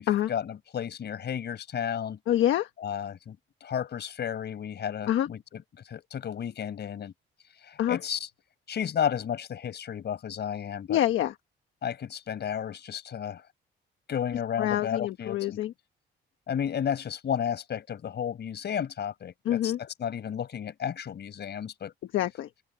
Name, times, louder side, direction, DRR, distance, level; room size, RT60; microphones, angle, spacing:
voice 1, 0.0-2.2 2.8-7.1 7.6-8.3 8.7-11.0 11.8-13.4 14.1-15.6 16.5-21.9, left 8 dB, 60° left, 4.9 m, -33 dB
voice 2, 2.3-2.7 5.1-5.3 7.8-8.0 10.9-11.3 14.6-15.7 19.4-19.8 22.1-22.5, left 12 dB, 80° left, 1.3 m, -26 dB
open air
cardioid pair, 90°, 20 cm